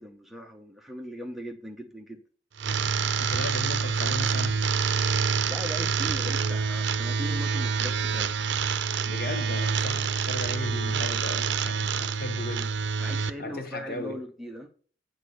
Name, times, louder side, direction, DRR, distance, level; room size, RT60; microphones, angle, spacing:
voice 1, 0.0-2.2 5.4-8.3 9.8-10.1 13.0-14.7, equal, ahead, 0.9 m, -39 dB
sound 1, 2.6-13.3, right 5 dB, 75° right, 0.5 m, -27 dB
voice 2, 3.2-4.6 9.0-12.7 13.4-14.2, left 2 dB, 50° left, 1.1 m, -36 dB
8.3 x 4.3 x 6.5 m
head